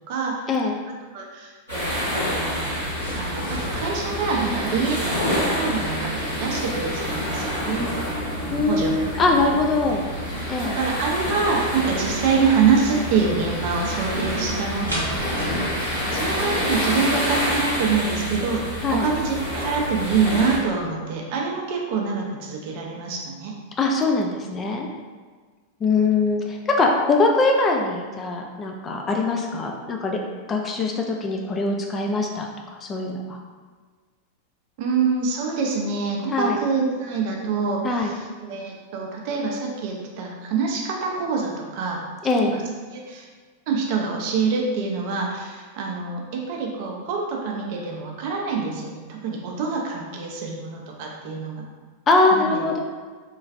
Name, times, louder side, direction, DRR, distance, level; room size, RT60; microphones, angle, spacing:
voice 1, 0.1-0.5 1.1-2.8 3.1-8.2 8.4-8.9 9.4-9.6 9.9-10.0 10.6-18.6 18.9-23.5 34.8-42.0 42.4-42.6 42.9-43.3 43.7-51.6 52.3-52.7, right 5 dB, 45° right, 0 dB, 0.5 m, -26 dB
sound 1, 1.7-20.6, equal, 80° left, 1.5 m, -28 dB
sound 2, 2.8-16.7, right 1 dB, 80° right, 0.7 m, -36 dB
voice 2, 8.5-10.0 10.5-10.8 18.8-19.1 23.8-24.9 25.8-30.2 30.5-33.4 36.3-36.6 37.8-38.1 42.2-42.5 52.1-52.8, left 3 dB, 25° left, 1 dB, 0.3 m, -22 dB
3.0 x 2.3 x 2.4 m, 1.5 s
figure-of-eight pair, 90°, 0 cm